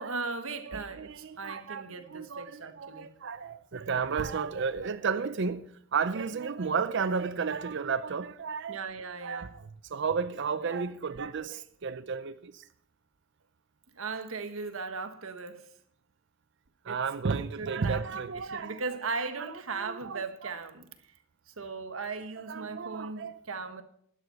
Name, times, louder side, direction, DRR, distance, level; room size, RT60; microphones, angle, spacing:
voice 1, 0.0-3.1 8.7-9.5 13.9-15.7 16.8-17.0 17.4-20.9 21.5-23.8, right 4 dB, 85° right, 1.5 m, -38 dB
voice 2, 0.7-8.8 9.2-12.7 16.8-18.8 19.4-20.5 22.4-23.3, right 5 dB, 60° right, 0.5 m, -33 dB
12.0 x 11.0 x 5.8 m
head